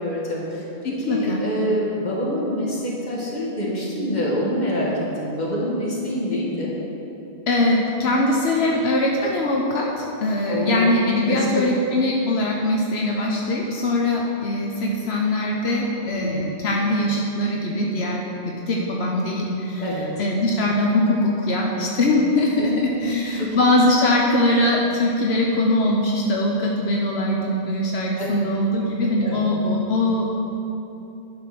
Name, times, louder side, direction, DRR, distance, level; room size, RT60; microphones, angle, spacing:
voice 1, 0.0-6.7 10.5-10.9 11.2-11.6 16.1-16.6 19.8-20.1 22.6-23.6 28.2-28.3 29.2-29.5, equal, 45° left, -5 dB, 1.9 m, -26 dB
voice 2, 0.8-1.4 7.5-19.9 20.2-30.2, left 1 dB, 85° left, -1 dB, 1.1 m, -22 dB
10.5 x 5.0 x 5.9 m, 2.9 s
omnidirectional pair, 1.0 m